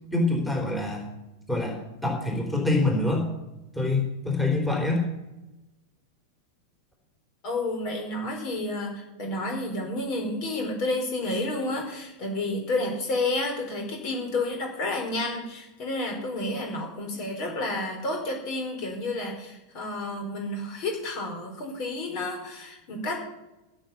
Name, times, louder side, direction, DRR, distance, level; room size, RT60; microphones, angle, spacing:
voice 1, 0.1-1.1 1.5-3.3 3.7-5.0, left 2 dB, 5° left, 0 dB, 3.5 m, -25 dB
voice 2, 7.4-23.2, left 2 dB, 45° left, 2 dB, 4.4 m, -30 dB
15.5 x 6.9 x 7.1 m, 1.0 s
figure-of-eight pair, 90°, 0 cm